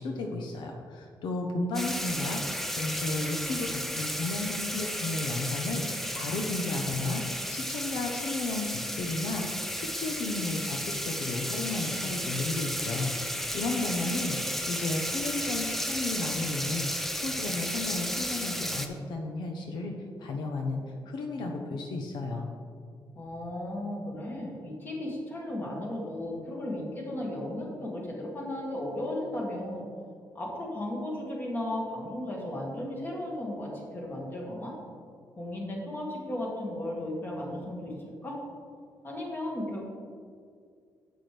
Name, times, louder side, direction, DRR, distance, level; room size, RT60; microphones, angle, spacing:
voice 1, 0.0-16.9 17.1-19.9 20.2-22.5, left 2 dB, 80° left, 2 dB, 0.9 m, -33 dB
sound 1, 1.7-18.9, equal, 5° left, 0.5 m, -33 dB
voice 2, 23.2-29.9 30.3-34.7 35.4-37.9 38.2-38.3 39.0-39.8, left 1 dB, 25° left, -3 dB, 2.0 m, -35 dB
10.5 x 8.4 x 3.4 m, 2.2 s
cardioid pair, 150°, 8 cm